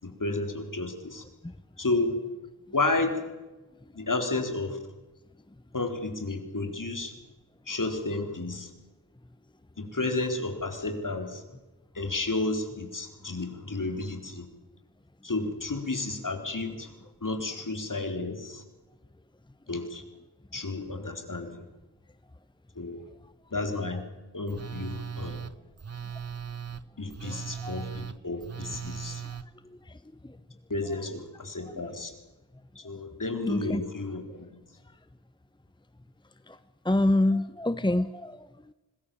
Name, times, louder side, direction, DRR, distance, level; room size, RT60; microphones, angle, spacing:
voice 1, 0.0-1.2 1.8-2.2 2.7-3.3 3.9-4.8 5.7-7.1 7.7-8.7 9.8-11.4 11.9-14.5 15.2-16.9 17.2-18.6 19.7-20.0 20.5-21.6 22.8-23.0 23.5-24.0 24.3-25.4 27.0-29.2 30.7-32.1 32.8-34.5, left 2 dB, 50° left, 6 dB, 4.3 m, -31 dB
Telephone, 24.5-29.4, right 7 dB, 40° right, 1.1 m, -38 dB
voice 2, 27.2-27.8 28.7-28.8 29.2-29.4 29.7-30.0 30.2-30.4 31.6-31.9 33.5-33.8 36.5-36.6 36.8-38.7, left 1 dB, 10° left, 13 dB, 1.0 m, -28 dB
25.5 x 21.0 x 7.2 m, 1.1 s
cardioid pair, 50°, 39 cm